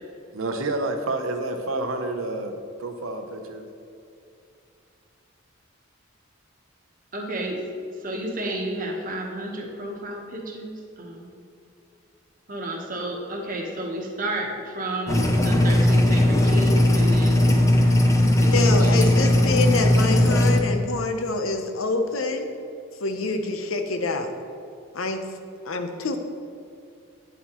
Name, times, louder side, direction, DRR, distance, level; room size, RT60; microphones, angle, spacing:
voice 1, 0.3-3.7, right 2 dB, 80° right, 5 dB, 0.8 m, -29 dB
voice 2, 7.1-7.6 8.0-11.3 12.5-17.6 17.8-18.0 18.4-19.2, right 1 dB, 40° right, 0 dB, 1.1 m, -32 dB
sound 1, 15.1-20.6, left 1 dB, 15° left, 0.5 m, -18 dB
voice 3, 18.4-22.5 23.0-24.3 24.9-25.2 25.7-26.2, left 3 dB, 80° left, 6 dB, 0.7 m, -26 dB
9.3 x 7.7 x 3.0 m, 2.5 s
head